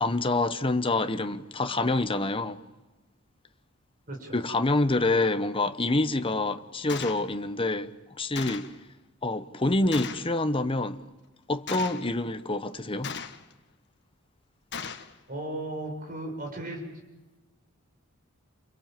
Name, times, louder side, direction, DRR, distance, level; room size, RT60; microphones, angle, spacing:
voice 1, 0.0-2.6 4.3-8.7 9.2-11.0 11.5-13.1, left 2 dB, 25° left, 1.1 m, -27 dB
voice 2, 4.1-4.4 15.3-16.8, right 1 dB, 45° right, 6.6 m, -35 dB
Gunshot gunfire, 6.9-7.2 8.4-8.8 9.9-10.3 11.7-12.1 13.0-13.5 14.7-15.1, left 6 dB, 55° left, 1.6 m, -37 dB
29.0 x 23.5 x 7.6 m
head